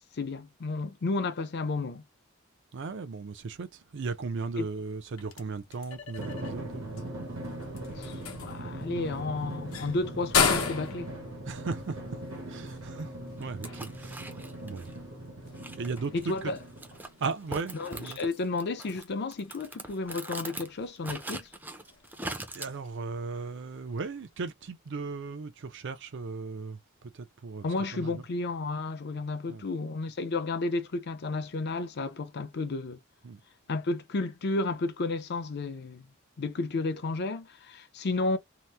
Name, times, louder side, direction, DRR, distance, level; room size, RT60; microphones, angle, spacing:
voice 1, 0.1-2.0 4.6-4.7 7.9-11.1 16.1-16.6 17.7-21.5 27.6-33.0 33.7-36.1 36.4-38.4, left 3 dB, 55° left, 0.5 m, -32 dB
voice 2, 2.7-7.1 11.5-12.0 12.5-13.1 13.4-14.9 15.8-16.5 17.2-18.2 22.5-26.8 27.1-27.7 27.9-28.1 29.5-29.7 33.2-33.4, right 4 dB, 60° right, 0.5 m, -36 dB
sound 1, 4.9-24.4, left 5 dB, 85° left, 0.8 m, -37 dB
Drum, 6.2-17.2, right 1 dB, 75° right, 1.3 m, -40 dB
sound 2, 13.4-14.9 15.6-18.3 18.6-20.7 21.0-22.7, right 2 dB, 10° right, 0.5 m, -41 dB
2.8 x 2.0 x 3.3 m
head